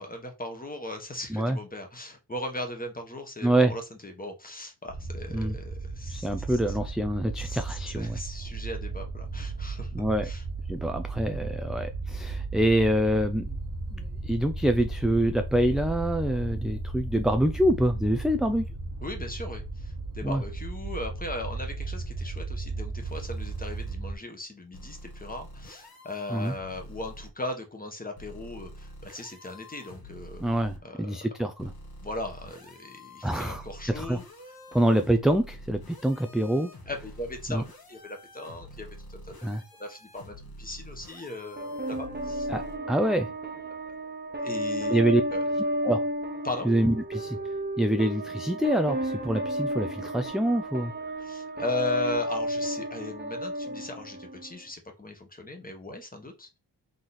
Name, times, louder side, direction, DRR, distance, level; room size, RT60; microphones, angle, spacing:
voice 1, 0.0-6.6 7.4-9.9 10.2-10.4 19.0-30.4 30.8-31.3 32.0-34.2 36.9-37.6 37.9-39.5 39.8-42.5 44.4-45.0 45.3-45.4 46.4-46.7 51.2-56.6, left 2 dB, 20° left, 1.3 m, -38 dB
voice 2, 3.4-3.7 5.3-5.6 6.1-8.2 9.9-10.3 10.7-13.5 13.9-18.7 20.2-20.4 26.3-26.5 30.4-31.7 33.2-34.2 34.7-36.7 37.5-37.6 39.4-39.6 42.5-43.3 44.9-45.2 45.8-46.0 46.6-47.4 47.8-50.9, right 1 dB, ahead, 0.4 m, -26 dB
sound 1, 4.9-24.1, right 3 dB, 45° right, 1.1 m, -35 dB
sound 2, 23.0-23.9 24.7-27.3 28.2-30.8 31.6-42.8, equal, 55° left, 1.4 m, -46 dB
sound 3, 41.6-54.6, right 1 dB, 25° right, 1.0 m, -32 dB
3.8 x 3.1 x 4.1 m
cardioid pair, 70°, 43 cm